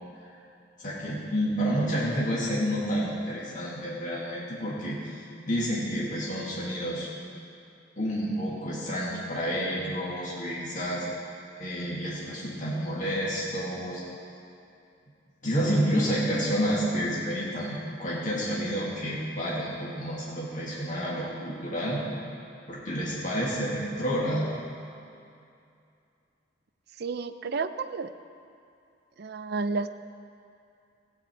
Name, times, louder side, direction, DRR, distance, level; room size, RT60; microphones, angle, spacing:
voice 1, 0.8-7.1 8.0-11.0 11.6-14.0 15.4-22.0 22.7-24.5, equal, 45° left, -6 dB, 1.7 m, -29 dB
voice 2, 27.0-28.1 29.2-29.9, right 4 dB, 60° right, 10 dB, 0.5 m, -31 dB
15.5 x 8.9 x 4.4 m, 2.5 s
head